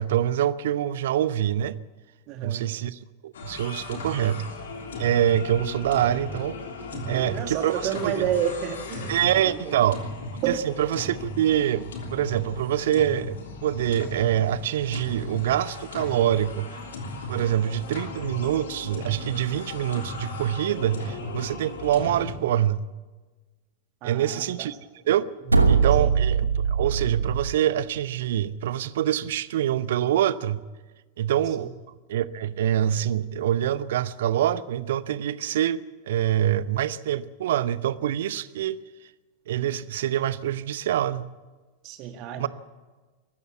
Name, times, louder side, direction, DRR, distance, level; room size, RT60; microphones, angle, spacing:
voice 1, 0.0-1.8 2.4-4.5 5.0-6.6 7.1-8.2 9.1-10.0 10.5-16.8 17.3-22.9 24.0-24.7 25.0-25.3 25.7-30.6 31.2-31.8 32.1-35.8 36.1-38.8 39.5-41.3 42.4-42.5, right 11 dB, 55° right, 17 dB, 0.7 m, -25 dB
voice 2, 2.3-2.6 6.9-9.1 9.4-9.8 10.4-10.6 24.0-24.7 26.0-26.1 31.6-31.7 41.8-42.5, right 9 dB, 40° right, 6 dB, 2.2 m, -30 dB
sound 1, 3.3-22.4, left 2 dB, 65° left, 3.2 m, -36 dB
sound 2, 25.5-27.6, right 5 dB, 80° right, 1.2 m, -21 dB
23.0 x 13.5 x 8.3 m, 1.3 s
figure-of-eight pair, 90°, 0 cm